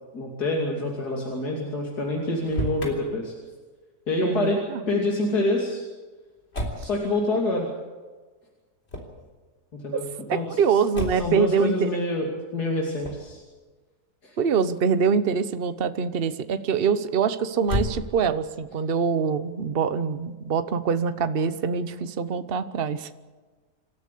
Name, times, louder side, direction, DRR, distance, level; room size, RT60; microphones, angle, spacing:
voice 1, 0.1-3.3 4.1-5.8 6.8-7.7 9.7-10.6 11.1-12.3 12.5-13.4 14.2-14.4, left 2 dB, 80° left, -1 dB, 3.4 m, -27 dB
Motor vehicle (road), 2.3-3.0 6.5-6.9 8.8-9.2 10.9-11.4 13.0-13.3 17.6-18.4, left 1 dB, 40° left, 3.9 m, -31 dB
voice 2, 4.2-4.8 9.9-10.0 10.3-11.9 14.4-23.1, right 6 dB, 40° right, 12 dB, 1.0 m, -24 dB
27.5 x 13.5 x 8.4 m, 1.3 s
omnidirectional pair, 1.7 m